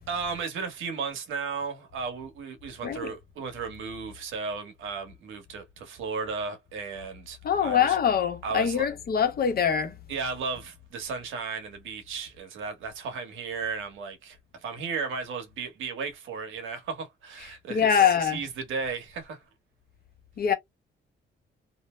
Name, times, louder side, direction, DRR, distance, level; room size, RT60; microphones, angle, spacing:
voice 1, 0.1-8.0 8.4-8.9 10.1-19.4, right 5 dB, 80° right, 1.1 m, -35 dB
voice 2, 7.4-9.9 17.7-18.4 20.4-20.5, left 8 dB, 50° left, 0.8 m, -23 dB
2.7 x 2.0 x 3.0 m
cardioid pair, 90°, 20 cm